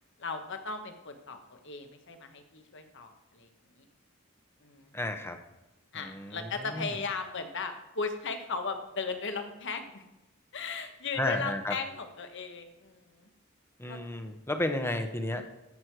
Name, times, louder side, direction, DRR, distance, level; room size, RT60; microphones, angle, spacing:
voice 1, 0.2-3.5 3.8-3.9 4.6-4.9 5.9-10.1 10.5-13.3 13.9-14.0, left 4 dB, 60° left, 6 dB, 1.3 m, -37 dB
voice 2, 4.9-5.4 5.9-6.9 11.2-11.7 13.8-15.4, left 1 dB, 10° left, 6 dB, 1.0 m, -32 dB
14.0 x 6.4 x 4.7 m, 1.0 s
head